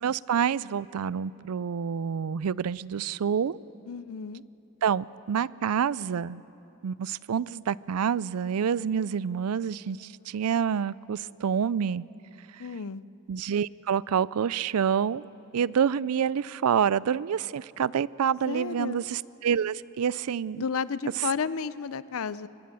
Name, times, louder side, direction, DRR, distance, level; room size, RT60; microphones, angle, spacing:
voice 1, 0.0-3.6 4.8-6.4 6.8-12.0 13.3-15.2 15.5-20.6, right 7 dB, 90° right, 21 dB, 0.4 m, -27 dB
voice 2, 3.9-4.4 12.6-13.0 18.5-19.1 20.6-22.5, left 5 dB, 70° left, 17 dB, 0.5 m, -32 dB
23.5 x 20.0 x 7.6 m, 3.0 s
head